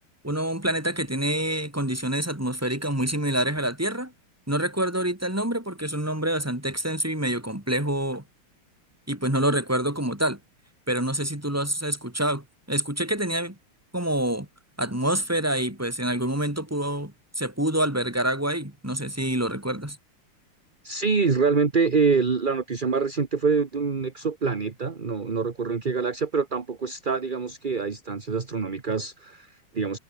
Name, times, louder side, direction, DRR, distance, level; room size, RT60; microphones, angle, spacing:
voice 1, 0.2-4.1 4.5-8.2 9.1-10.4 10.9-13.6 13.9-14.5 14.8-20.0, right 1 dB, 5° right, 3.5 m, -27 dB
voice 2, 20.8-30.0, right 5 dB, 25° right, 1.2 m, -25 dB
omnidirectional pair, 2.4 m